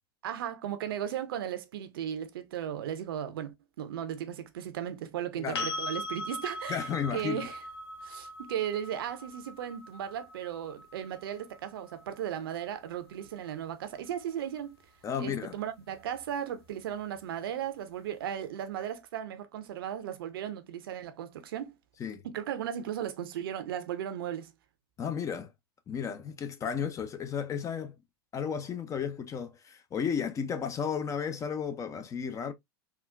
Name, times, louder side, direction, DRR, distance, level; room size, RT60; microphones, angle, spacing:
voice 1, 0.2-7.6 8.0-14.8 15.2-21.8 22.2-24.5, right 10 dB, 65° right, 0.6 m, -36 dB
sound 1, 5.5-13.4 16.2-16.3, left 1 dB, 75° left, 1.0 m, -40 dB
voice 2, 6.7-7.5 15.0-15.5 22.0-22.3 25.0-25.5 25.9-27.9 28.3-32.5, left 7 dB, 25° left, 0.5 m, -33 dB
3.7 x 2.3 x 2.2 m
figure-of-eight pair, 90°, 13 cm